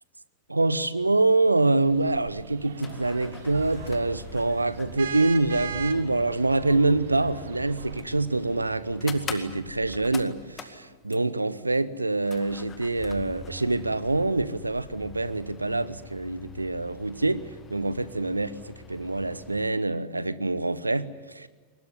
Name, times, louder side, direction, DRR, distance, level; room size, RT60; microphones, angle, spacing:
voice 1, 0.5-17.4 17.7-21.5, right 2 dB, 80° right, 0.9 m, -25 dB
sound 1, 1.3-1.4 1.6-1.7 2.6-11.5 12.2-19.7, left 5 dB, 25° left, 2.1 m, -44 dB
sound 2, 1.8-8.0, right 7 dB, 65° right, 1.7 m, -40 dB
22.5 x 20.0 x 9.7 m
figure-of-eight pair, 90°, 0 cm